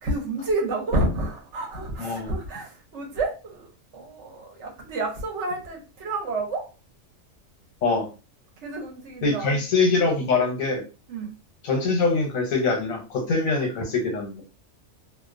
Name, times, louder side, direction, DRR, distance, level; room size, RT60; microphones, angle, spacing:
voice 1, 0.0-6.7 8.6-9.6 11.1-11.3, right 2 dB, 65° right, 1 dB, 1.1 m, -29 dB
voice 2, 2.0-2.4 7.8-8.1 9.2-10.8 11.6-14.4, left 3 dB, 85° left, 2 dB, 1.3 m, -23 dB
2.8 x 2.1 x 2.4 m, 0.33 s
omnidirectional pair, 1.4 m